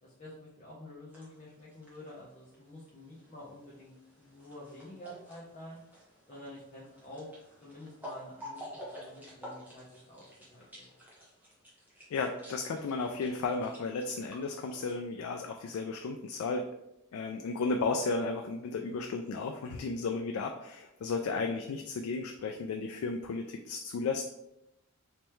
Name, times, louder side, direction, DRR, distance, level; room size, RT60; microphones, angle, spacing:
voice 1, 0.0-3.9 4.2-5.8 6.3-7.3 7.6-10.9 17.3-17.6, left 1 dB, 35° left, -8 dB, 0.8 m, -49 dB
sound 1, 1.1-14.9, equal, 10° right, 1.1 m, -51 dB
voice 2, 12.1-16.7 17.1-24.3, left 4 dB, 85° left, 4 dB, 0.3 m, -34 dB
3.3 x 3.1 x 3.0 m, 0.86 s
head